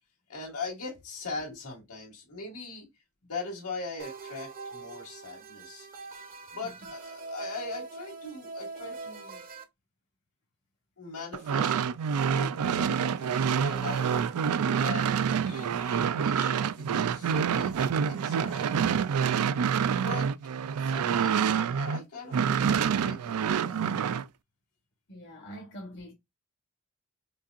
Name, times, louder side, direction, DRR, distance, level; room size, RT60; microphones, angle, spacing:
voice 1, 0.3-2.9 3.2-9.4 11.0-11.8 12.2-14.3 14.8-18.8 19.8-20.3 20.8-23.8, left 3 dB, 85° left, 2.2 m, -41 dB
sound 1, 4.0-9.6, right 3 dB, 40° right, 0.8 m, -42 dB
sound 2, 11.3-22.0 22.3-24.2, right 7 dB, 85° right, 0.4 m, -27 dB
voice 2, 25.1-26.1, equal, 55° left, 1.3 m, -44 dB
5.4 x 2.5 x 2.4 m
head